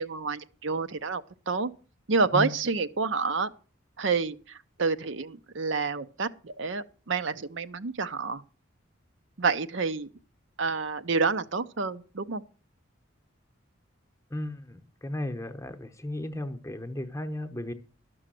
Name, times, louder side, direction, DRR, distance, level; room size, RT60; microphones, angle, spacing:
voice 1, 0.0-1.7 2.1-3.5 4.0-8.4 9.4-10.1 10.6-12.4, right 4 dB, 65° right, 0.7 m, -29 dB
voice 2, 14.3-17.7, left 1 dB, 15° left, 0.9 m, -34 dB
12.0 x 6.3 x 7.6 m
head